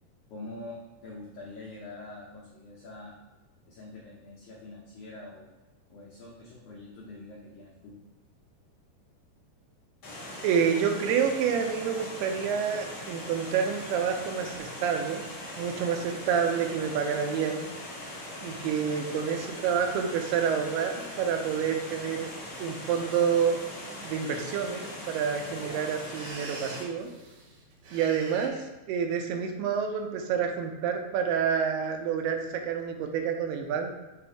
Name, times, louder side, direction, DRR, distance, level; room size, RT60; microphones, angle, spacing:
voice 1, 0.3-3.1 3.7-5.5 5.9-8.0, left 2 dB, 85° left, -4 dB, 1.7 m, -45 dB
Water, 10.0-26.8, left 1 dB, 40° left, 1.5 m, -41 dB
voice 2, 10.4-15.2 15.6-17.7 18.4-20.9 21.2-22.3 22.6-23.6 24.0-27.1 27.9-34.0, right 7 dB, 85° right, 4 dB, 2.6 m, -28 dB
sound 1, 21.7-21.8 22.2-22.7 23.3-23.6 23.8-23.9 24.1-28.5, right 2 dB, 70° right, 2.0 m, -46 dB
6.9 x 4.2 x 3.5 m, 1.1 s
omnidirectional pair, 4.7 m